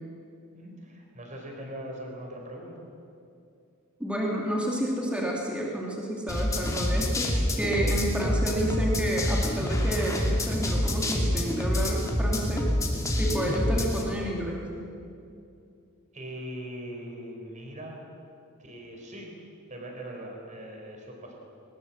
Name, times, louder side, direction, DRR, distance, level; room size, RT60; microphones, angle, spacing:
voice 1, 0.5-2.8 16.1-18.0 18.6-19.4 19.7-21.3, right 1 dB, 35° right, 1 dB, 4.7 m, -40 dB
voice 2, 4.0-7.3 7.6-12.7 13.2-14.6, right 1 dB, 5° right, -3 dB, 2.8 m, -30 dB
sound 1, 6.3-14.0, left 1 dB, 15° left, 2.6 m, -27 dB
22.0 x 20.5 x 7.5 m, 2.5 s
head